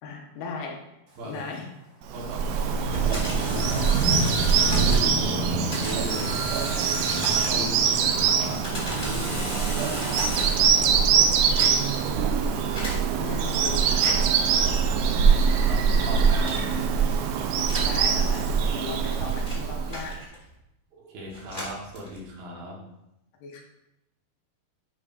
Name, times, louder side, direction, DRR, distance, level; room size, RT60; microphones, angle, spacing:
voice 1, 0.0-0.8 1.2-1.7 13.2-13.8 14.6-14.9 17.7-20.2 21.6-21.7 23.4-23.6, left 4 dB, 80° left, -1 dB, 3.0 m, -37 dB
Thunder, 1.1-1.6 1.9-12.3 12.6-13.0 13.4-13.9 14.1-14.2 14.4-14.5 14.9-15.5 16.2-17.2, left 2 dB, 55° right, 3.6 m, -34 dB
voice 2, 2.1-4.1 4.7-6.4 7.3-11.1 15.1-16.7 20.9-22.8, equal, 70° right, -3 dB, 2.9 m, -38 dB
Bird vocalization bird call bird song, 2.1-20.1, right 6 dB, 85° right, 1.9 m, -23 dB
sound 1, 2.9-5.2 5.7-7.8 8.4-10.7 11.4-12.0 12.7-13.0 13.9-14.4 15.3-15.6 16.4-16.8 17.6-18.0 18.8-20.5 21.3-22.3, left 1 dB, 15° left, 1.5 m, -35 dB
10.5 x 4.8 x 2.5 m, 0.89 s
omnidirectional pair, 4.4 m